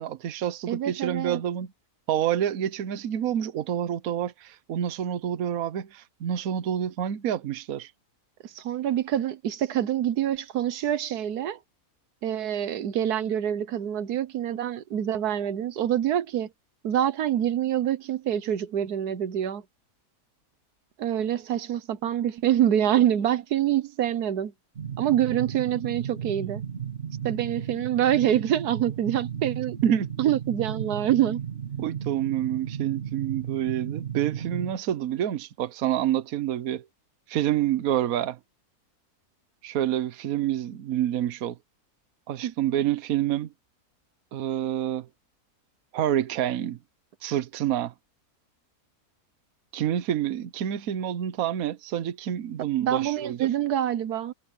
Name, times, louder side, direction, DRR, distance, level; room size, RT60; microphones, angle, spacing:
voice 1, 0.0-1.7 2.1-7.9 29.8-30.1 31.8-36.8 37.3-38.4 39.6-41.6 42.3-43.5 44.3-45.1 45.9-46.8 47.2-47.9 49.7-53.5, right 11 dB, 70° right, 1.3 m, -28 dB
voice 2, 0.7-1.4 8.4-11.6 12.2-16.5 16.8-19.6 21.0-24.5 25.0-26.6 27.2-29.8 30.2-31.4 42.4-42.5 52.8-54.3, right 11 dB, 90° right, 1.5 m, -26 dB
sound 1, 24.8-34.7, right 8 dB, 45° right, 2.3 m, -34 dB
omnidirectional pair, 1.6 m